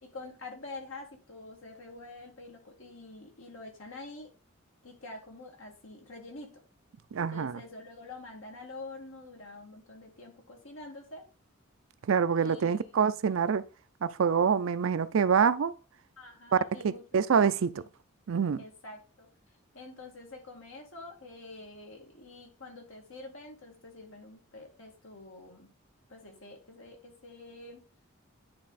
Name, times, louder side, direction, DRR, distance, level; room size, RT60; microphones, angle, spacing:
voice 1, 0.0-4.3 4.8-6.6 7.3-11.2 12.3-12.9 16.2-17.0 17.7-17.9 18.6-19.3 19.7-25.7 26.1-27.8, left 2 dB, 70° left, 2.1 m, -47 dB
voice 2, 7.1-7.6 12.1-13.6 14.0-15.7 16.5-16.6 16.8-17.8 18.3-18.6, right 6 dB, 70° right, 0.4 m, -26 dB
9.7 x 3.4 x 4.0 m
head